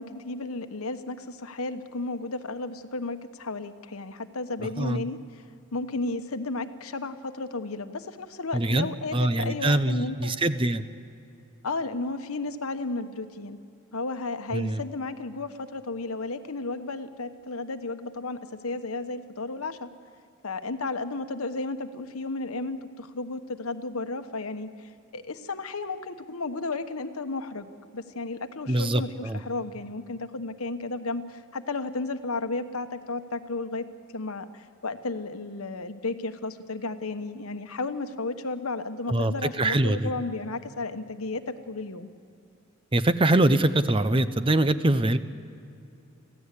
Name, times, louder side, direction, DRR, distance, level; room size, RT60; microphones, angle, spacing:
voice 1, 0.0-5.2 5.7-10.4 11.6-13.6 13.9-19.9 20.4-33.9 34.1-42.1, left 3 dB, 85° left, 9 dB, 1.2 m, -33 dB
voice 2, 8.5-10.8 14.5-14.8 28.7-29.4 39.1-40.1 42.9-45.2, right 1 dB, 25° right, 12 dB, 0.7 m, -24 dB
25.5 x 16.0 x 8.4 m, 2.6 s
head